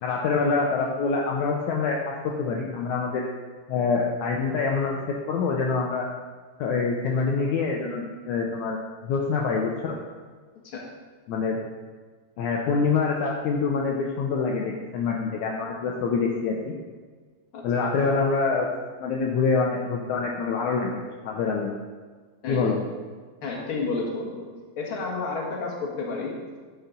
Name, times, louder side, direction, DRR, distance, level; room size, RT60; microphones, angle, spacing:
voice 1, 0.0-3.3 3.7-5.0 5.3-6.1 6.6-10.0 11.3-11.6 12.4-16.7 17.6-18.7 19.0-21.7 22.5-22.8, left 4 dB, 75° left, -1 dB, 2.1 m, -25 dB
voice 2, 22.4-22.8 23.4-24.5 24.8-26.4, left 3 dB, 45° left, -1 dB, 2.3 m, -31 dB
11.0 x 6.0 x 5.3 m, 1.5 s
omnidirectional pair, 3.8 m